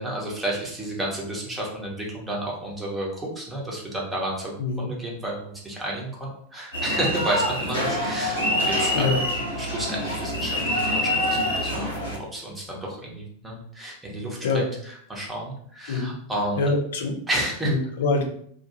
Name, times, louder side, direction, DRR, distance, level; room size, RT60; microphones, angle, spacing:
voice 1, 0.0-9.2 9.5-16.7 17.3-17.7, right 1 dB, 10° right, -3 dB, 0.9 m, -31 dB
voice 2, 4.6-4.9 8.9-9.2 14.4-14.6 15.9-16.1 16.6-17.2 17.7-18.2, left 3 dB, 60° left, 2 dB, 0.5 m, -24 dB
sound 1, 6.7-12.2, left 1 dB, 90° left, 1.2 m, -26 dB
2.5 x 2.2 x 2.8 m, 0.64 s
figure-of-eight pair, 90°, 0 cm